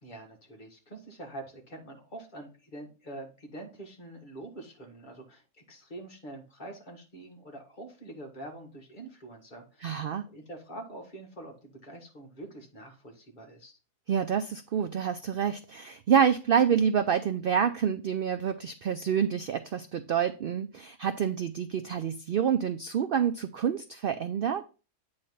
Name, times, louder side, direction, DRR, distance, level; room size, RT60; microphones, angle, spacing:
voice 1, 0.0-13.8, right 1 dB, 35° left, 1 dB, 1.7 m, -45 dB
voice 2, 9.8-10.3 14.1-24.6, right 8 dB, 85° right, 9 dB, 0.4 m, -27 dB
8.6 x 3.2 x 5.5 m, 0.34 s
omnidirectional pair, 1.5 m